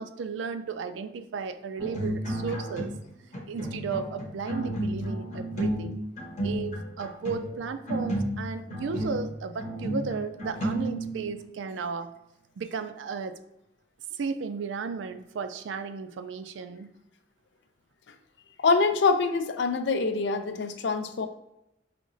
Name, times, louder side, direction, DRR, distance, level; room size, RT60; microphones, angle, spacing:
voice 1, 0.0-2.9 3.5-6.0 6.4-12.1 12.6-13.4 14.1-16.9, right 5 dB, 80° right, 10 dB, 0.4 m, -34 dB
sound 1, 1.8-3.1 3.3-11.5, right 1 dB, 40° left, 0.9 m, -32 dB
voice 2, 18.6-21.3, left 4 dB, 70° left, 9 dB, 0.4 m, -25 dB
4.9 x 2.9 x 2.6 m, 0.88 s
head